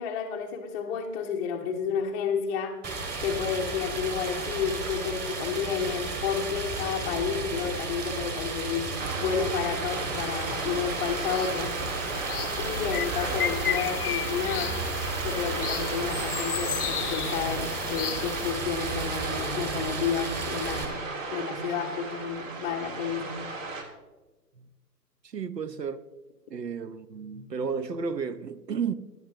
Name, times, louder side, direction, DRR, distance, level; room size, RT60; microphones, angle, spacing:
voice 1, 0.0-8.9 9.2-11.8 12.6-14.8 15.2-21.0 21.3-23.4, left 6 dB, 10° left, 0.6 m, -31 dB
Stream, 2.8-20.8, right 3 dB, 20° right, 2.0 m, -34 dB
sound 1, 9.0-23.8, right 3 dB, 50° right, 2.5 m, -36 dB
sound 2, 10.4-10.6 10.9-18.5, left 10 dB, 65° left, 0.5 m, -34 dB
voice 2, 25.2-26.1 26.5-28.9, right 6 dB, 80° right, 0.9 m, -32 dB
22.0 x 11.0 x 3.0 m
figure-of-eight pair, 125°, 48 cm